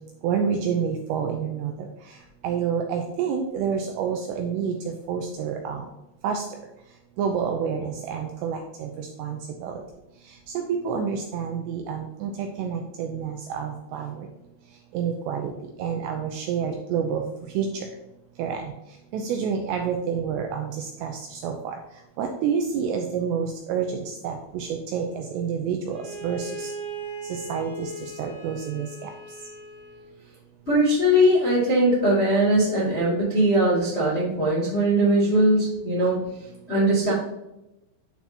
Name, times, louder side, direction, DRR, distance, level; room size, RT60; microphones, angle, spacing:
voice 1, 0.2-1.7 2.4-4.7 5.1-5.8 6.2-6.4 7.2-9.7 10.8-14.1 14.9-15.5 15.8-17.2 17.6-17.7 18.4-18.6 19.1-20.7 21.0-21.5 22.2-23.9 24.2-26.0 26.2-26.7 27.5-27.9 28.2-29.1, right 7 dB, 85° right, 3 dB, 2.5 m, -28 dB
Bowed string instrument, 25.9-30.1, right 2 dB, 85° left, 5.4 m, -38 dB
voice 2, 30.6-36.2 36.7-37.1, right 1 dB, 25° left, -8 dB, 1.3 m, -20 dB
11.5 x 4.3 x 2.8 m, 0.92 s
omnidirectional pair, 5.5 m